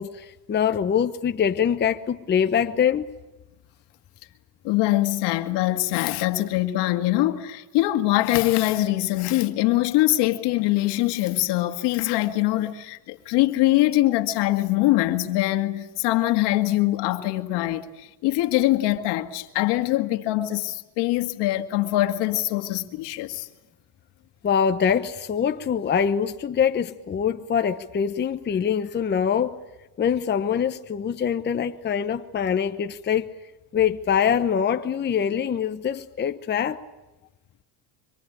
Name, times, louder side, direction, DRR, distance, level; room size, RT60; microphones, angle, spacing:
voice 1, 0.0-3.1 24.4-29.6 30.0-33.3 33.7-36.8, left 8 dB, 25° left, 1.0 m, -24 dB
voice 2, 4.6-23.5, left 16 dB, 65° left, 2.1 m, -23 dB
25.0 x 25.0 x 8.8 m
supercardioid pair, 115°, 43 cm